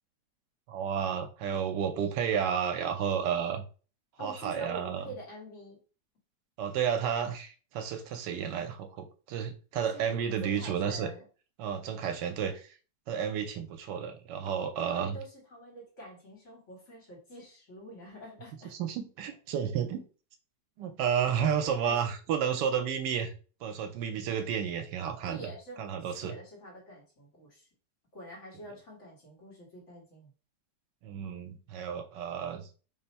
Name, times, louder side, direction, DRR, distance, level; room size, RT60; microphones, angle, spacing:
voice 1, 0.7-3.7 4.2-5.0 6.6-11.1 11.6-12.8 13.1-15.2 18.8-20.0 20.8-23.3 23.6-25.5 25.8-26.3 31.0-32.7, right 8 dB, 75° right, 7 dB, 1.2 m, -31 dB
voice 2, 4.2-5.8 9.9-10.1 10.4-11.3 14.9-18.7 21.8-22.1 25.3-27.7 28.1-30.3, right 1 dB, 45° left, -3 dB, 1.6 m, -46 dB
3.3 x 2.5 x 4.0 m, 0.36 s
omnidirectional pair, 1.9 m